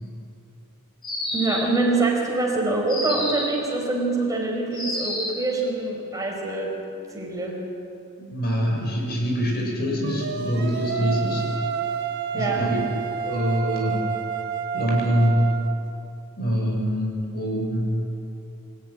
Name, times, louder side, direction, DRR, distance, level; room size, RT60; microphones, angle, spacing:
sound 1, 1.0-1.8 2.9-3.6 4.7-5.5, left 1 dB, 25° left, 4.8 m, -29 dB
voice 1, 1.3-6.7 7.1-7.6 12.3-12.7, right 3 dB, 15° right, -2 dB, 5.0 m, -25 dB
voice 2, 8.2-11.5 12.3-12.8 13.2-14.1 14.7-15.6 16.4-18.0, equal, 45° left, 0 dB, 6.1 m, -24 dB
sound 2, 10.0-15.8, right 7 dB, 50° right, 1.4 m, -29 dB
26.0 x 13.5 x 9.8 m, 2.8 s
head